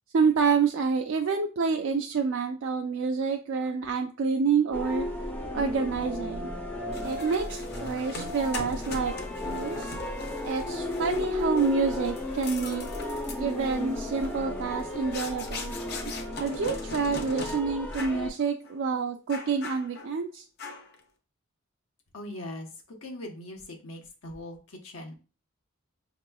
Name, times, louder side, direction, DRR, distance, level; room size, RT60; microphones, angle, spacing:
voice 1, 0.1-5.1 5.5-6.5 7.0-9.1 9.4-9.9 10.4-12.9 13.4-15.7 16.4-20.4, right 5 dB, 65° right, 3 dB, 0.3 m, -28 dB
sound 1, 4.7-18.3, left 2 dB, 10° left, 0.4 m, -34 dB
sound 2, 6.9-17.6 17.9-18.3 18.6-18.8 19.3-20.2 20.6-21.0, left 3 dB, 50° left, 0.6 m, -41 dB
voice 2, 22.1-22.7 23.0-25.1, left 1 dB, 90° left, 2 dB, 0.9 m, -40 dB
5.4 x 2.9 x 2.2 m, 0.36 s
head